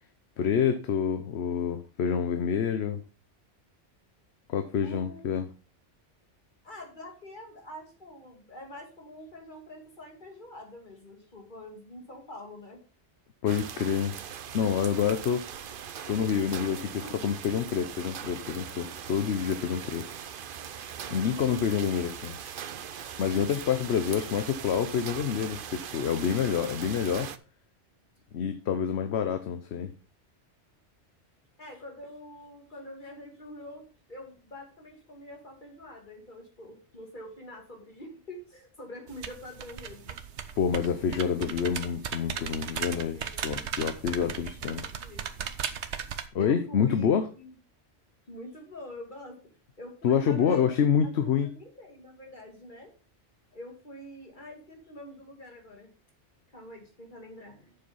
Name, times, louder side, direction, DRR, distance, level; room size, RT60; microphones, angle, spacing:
voice 1, 0.4-3.0 4.5-5.5 13.4-14.2 14.5-15.5 16.1-16.8 17.2-20.1 21.1-22.3 23.2-27.3 28.3-29.9 40.6-44.8 46.3-47.3 50.0-51.5, left 7 dB, 70° left, 9 dB, 1.0 m, -27 dB
voice 2, 4.8-5.3 6.6-12.8 17.0-17.2 18.5-18.6 31.6-40.2 43.0-45.5 46.4-47.5 48.3-49.4 49.8-50.7 51.2-52.9 53.5-55.9 56.5-57.8, left 1 dB, 45° left, 2 dB, 2.7 m, -46 dB
sound 1, 13.5-27.4, right 8 dB, 55° right, 0.8 m, -40 dB
sound 2, 39.1-46.3, right 8 dB, 75° right, 1.1 m, -37 dB
7.8 x 6.9 x 5.4 m, 0.35 s
omnidirectional pair, 1.2 m